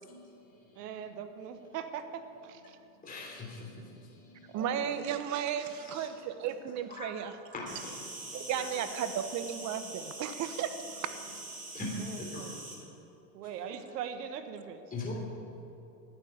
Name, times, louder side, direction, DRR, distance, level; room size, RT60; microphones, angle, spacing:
voice 1, 0.0-1.2 2.7-4.6 5.0-5.1 5.7-6.3 6.9-7.1 7.5-8.7 11.7-11.9 12.2-12.5 12.8-12.9 14.9-15.1, left 3 dB, 20° left, -3 dB, 3.5 m, -44 dB
voice 2, 0.7-2.8 4.5-5.3 12.1-12.5 13.3-14.9, right 8 dB, 80° right, 8 dB, 1.5 m, -41 dB
voice 3, 4.5-7.4 8.3-11.1, right 9 dB, 35° right, 10 dB, 1.1 m, -34 dB
Insect, 7.7-12.7, right 2 dB, 15° right, 3.3 m, -44 dB
11.5 x 9.0 x 9.9 m, 2.9 s
supercardioid pair, 115°, 47 cm